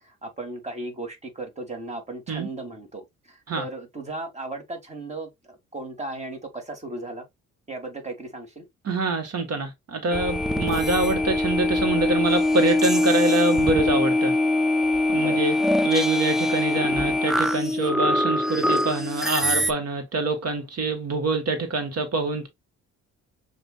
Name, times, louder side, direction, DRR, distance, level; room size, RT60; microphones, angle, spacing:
voice 1, 0.0-7.2 7.7-8.6 15.1-15.4, right 2 dB, 20° right, 1.7 m, -36 dB
voice 2, 8.8-14.4 15.1-15.6 15.8-22.5, right 3 dB, 55° right, 1.3 m, -25 dB
sound 1, 10.1-19.7, left 1 dB, ahead, 0.4 m, -23 dB
6.6 x 2.6 x 2.3 m
cardioid pair, 90°, 30 cm